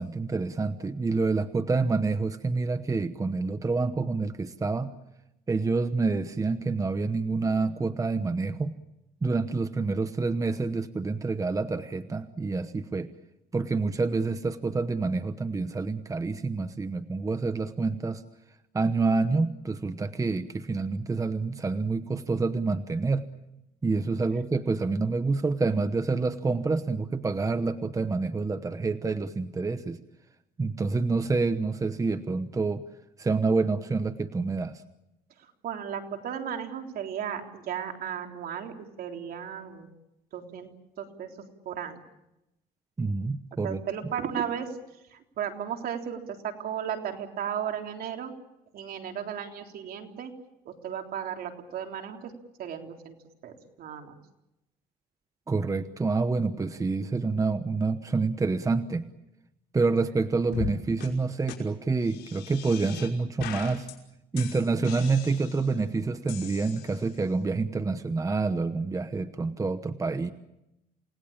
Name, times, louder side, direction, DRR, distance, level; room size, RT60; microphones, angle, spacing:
voice 1, 0.0-4.9 5.5-8.7 9.2-13.1 13.5-18.2 18.7-23.3 23.8-30.0 30.6-32.8 33.2-34.8 43.0-43.8 55.5-59.0 59.7-63.9 64.3-70.3, right 3 dB, 20° right, 11 dB, 1.0 m, -27 dB
voice 2, 35.4-39.9 40.3-40.7 41.0-41.3 41.7-42.0 43.6-44.8 45.1-48.3 48.7-50.3 50.7-52.3 52.6-53.1 53.4-54.1, right 8 dB, 60° right, 3 dB, 3.6 m, -35 dB
sound 1, 60.5-60.7 61.0-61.1 61.5-61.6 62.0-63.1 63.4-63.9 64.4-65.8 66.3-67.2, left 11 dB, 80° left, 5.6 m, -40 dB
29.0 x 19.0 x 8.8 m, 0.91 s
cardioid pair, 110°, 17 cm